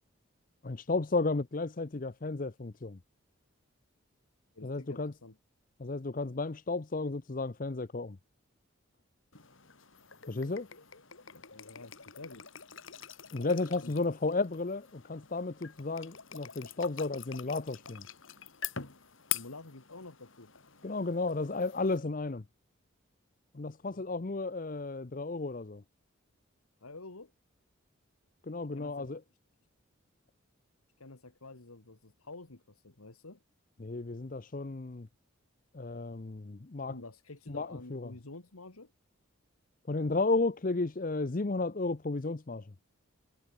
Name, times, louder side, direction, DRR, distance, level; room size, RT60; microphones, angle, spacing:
voice 1, 0.6-3.0 4.6-5.1 5.8-8.2 10.3-10.7 13.3-18.1 20.8-22.4 23.5-25.8 28.4-29.2 33.8-35.1 35.7-36.9 37.5-38.1 39.9-42.7, left 3 dB, 40° left, 0.6 m, -33 dB
voice 2, 4.5-5.4 11.3-12.5 13.8-13.9 19.3-20.5 23.8-24.0 26.8-27.3 28.7-29.2 31.0-33.4 36.9-38.9, left 2 dB, 90° left, 2.0 m, -49 dB
sound 1, 9.3-22.0, left 10 dB, 65° left, 2.3 m, -45 dB
head